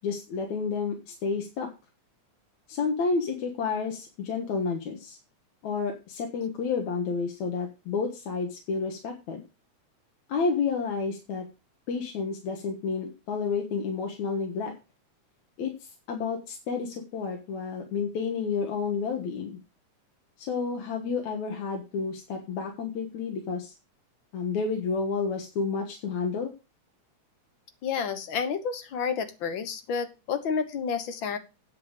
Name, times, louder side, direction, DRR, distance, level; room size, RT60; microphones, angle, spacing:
voice 1, 0.0-1.7 2.7-5.2 5.6-9.4 10.3-11.4 11.9-14.7 15.6-19.6 20.4-23.7 24.3-26.5, left 5 dB, 75° left, 2 dB, 2.8 m, -30 dB
voice 2, 27.8-31.4, left 6 dB, 55° left, 9 dB, 1.6 m, -30 dB
9.6 x 8.2 x 5.1 m, 0.29 s
omnidirectional pair, 3.4 m